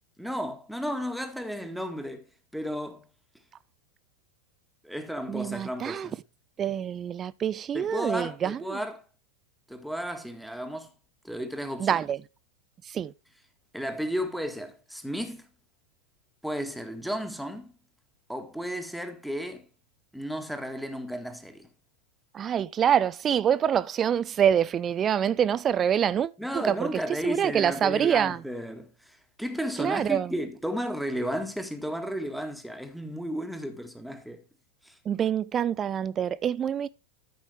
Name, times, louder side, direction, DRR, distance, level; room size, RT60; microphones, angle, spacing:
voice 1, 0.2-2.3 2.5-3.0 4.8-6.2 7.7-9.0 9.7-10.9 11.2-12.1 13.7-15.5 16.4-17.7 18.3-19.7 20.1-21.7 26.4-34.4 34.8-35.0, equal, ahead, 1.7 m, -33 dB
voice 2, 5.3-6.1 6.6-8.8 11.8-12.2 12.9-13.1 22.3-26.9 27.2-28.4 29.8-30.3 35.1-36.9, right 9 dB, 25° right, 0.6 m, -26 dB
13.5 x 5.6 x 3.4 m
figure-of-eight pair, 90°, 0 cm